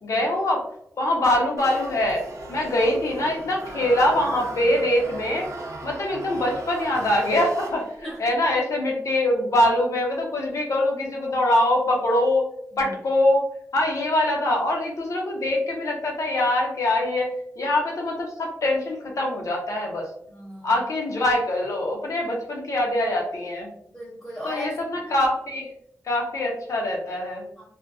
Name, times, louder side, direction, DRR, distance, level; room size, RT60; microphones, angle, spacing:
voice 1, 0.0-0.7 1.0-2.2 2.5-5.5 5.8-12.5 12.8-13.5 13.7-17.3 17.6-20.1 20.6-23.7 24.4-25.7 26.0-27.5, left 1 dB, 80° left, 0 dB, 0.7 m, -23 dB
sound 1, 1.6-8.2, right 2 dB, 75° right, 0.5 m, -38 dB
voice 2, 20.3-20.8 23.9-24.7 25.1-25.2 27.6-27.7, equal, 5° right, -9 dB, 0.9 m, -38 dB
2.5 x 2.1 x 2.4 m, 0.68 s
wide cardioid pair, 85°, 5 cm